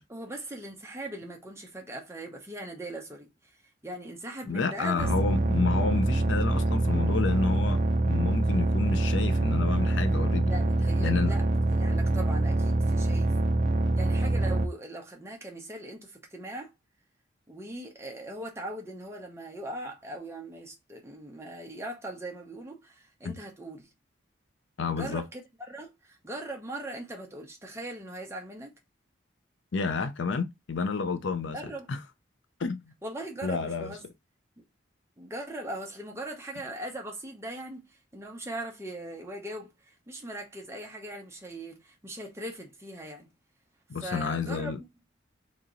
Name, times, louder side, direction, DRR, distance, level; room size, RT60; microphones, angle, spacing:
voice 1, 0.1-3.6 3.8-5.1 10.5-11.4 11.7-13.4 13.9-16.7 17.5-23.9 24.9-25.4 25.7-28.7 31.5-31.9 33.0-34.0 35.2-43.3 44.0-44.8, right 1 dB, 15° right, 0.8 m, -40 dB
voice 2, 4.5-10.5 11.0-11.3 23.2-23.4 24.8-25.2 29.7-31.6 31.9-32.0 32.6-32.8 33.4-33.9 43.9-44.8, left 4 dB, 75° left, 0.5 m, -30 dB
sound 1, 5.0-14.7, right 2 dB, 40° right, 0.4 m, -25 dB
2.9 x 2.9 x 3.8 m
head